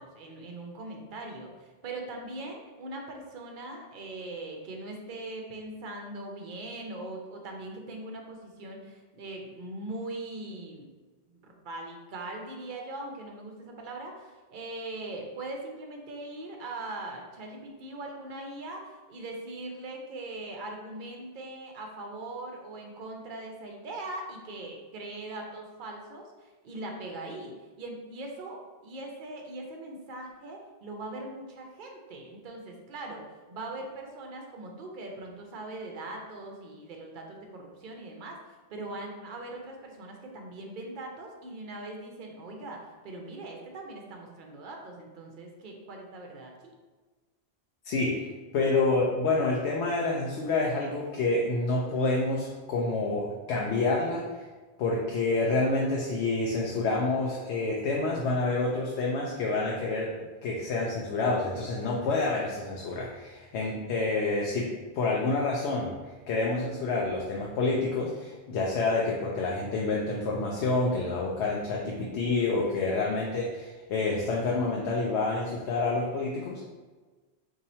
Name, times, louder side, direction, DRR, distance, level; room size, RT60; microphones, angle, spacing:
voice 1, 0.0-10.9 11.3-38.4 38.7-46.7, right 2 dB, 55° right, 1 dB, 0.7 m, -41 dB
voice 2, 47.8-48.3 48.5-54.4 54.8-60.1 60.4-64.7 64.9-65.9 66.3-76.6, left 3 dB, 80° left, -2 dB, 0.8 m, -28 dB
2.8 x 2.7 x 4.1 m, 1.3 s
omnidirectional pair, 1.1 m